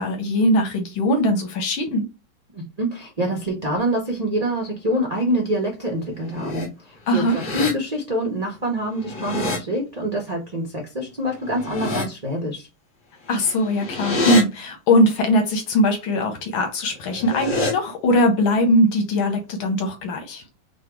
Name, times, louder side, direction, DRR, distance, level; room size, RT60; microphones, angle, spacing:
voice 1, 0.0-2.0 7.1-7.4 13.3-20.4, left 1 dB, 85° left, 1.7 m, -20 dB
voice 2, 2.5-12.7, equal, 65° right, 0.4 m, -26 dB
sound 1, 6.1-6.7 7.1-7.7 8.9-9.6 11.4-12.1 13.3-14.4 17.0-17.7, left 2 dB, 45° left, 1.2 m, -27 dB
4.0 x 2.2 x 4.5 m
omnidirectional pair, 2.2 m